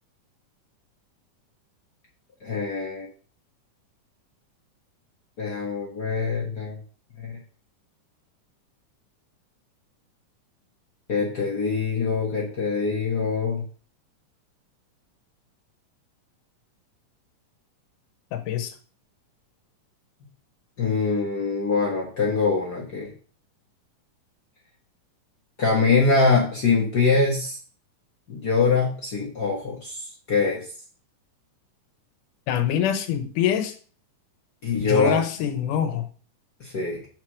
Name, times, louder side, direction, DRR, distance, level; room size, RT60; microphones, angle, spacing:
voice 1, 2.4-3.1 5.4-6.7 7.2-7.3 11.1-13.6 20.8-23.1 25.6-27.6 28.3-30.6 34.6-35.2 36.6-37.0, left 4 dB, 55° left, -3 dB, 1.1 m, -23 dB
voice 2, 18.3-18.7 32.5-33.7 34.8-36.0, left 9 dB, 80° left, 7 dB, 2.4 m, -24 dB
5.0 x 4.6 x 6.1 m, 0.41 s
omnidirectional pair, 3.7 m